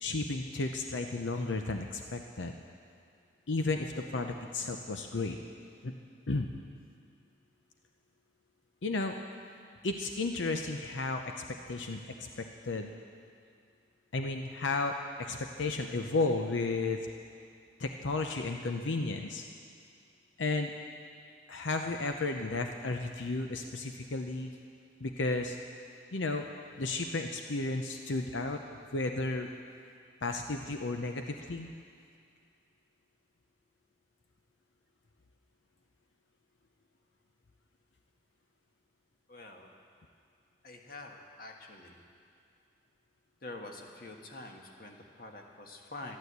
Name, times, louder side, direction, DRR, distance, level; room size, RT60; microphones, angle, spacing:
voice 1, 0.0-2.5 3.5-5.4 5.8-5.9 6.3-6.5 8.8-9.2 9.8-12.9 14.1-17.0 17.8-19.4 20.4-20.7 21.5-24.5 25.0-25.6 26.1-26.5 26.8-28.6 28.9-29.5 30.2-31.7, left 3 dB, 90° left, 4 dB, 0.8 m, -33 dB
voice 2, 39.3-39.7 40.6-42.0 43.4-46.2, left 2 dB, 50° left, 1 dB, 1.5 m, -46 dB
12.5 x 12.0 x 8.1 m, 2.3 s
head